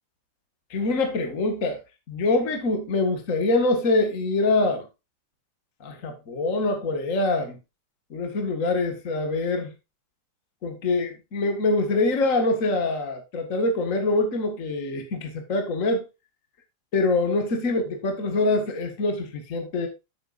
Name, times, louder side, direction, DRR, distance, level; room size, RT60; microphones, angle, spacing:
voice 1, 0.7-1.8 2.1-4.9 5.8-7.6 8.1-9.7 10.6-16.1 16.9-19.9, left 2 dB, 40° left, 2.0 m, -24 dB
11.0 x 7.8 x 2.5 m
omnidirectional pair, 2.4 m